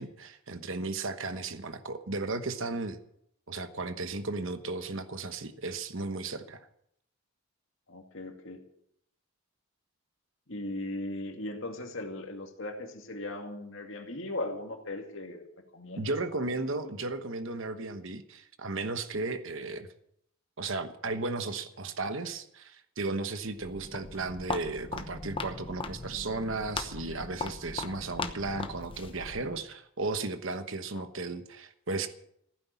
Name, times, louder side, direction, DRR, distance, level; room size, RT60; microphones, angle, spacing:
voice 1, 0.0-3.0 3.5-6.7 16.0-19.9 20.6-32.1, right 3 dB, 60° right, 9 dB, 1.1 m, -35 dB
voice 2, 7.9-8.6 10.5-15.4 15.7-17.0 19.6-19.7 30.9-31.1, left 2 dB, 60° left, 4 dB, 2.3 m, -38 dB
Walk footsteps, 23.5-29.6, left 3 dB, 25° left, 0.9 m, -39 dB
15.5 x 9.6 x 8.3 m, 0.73 s
head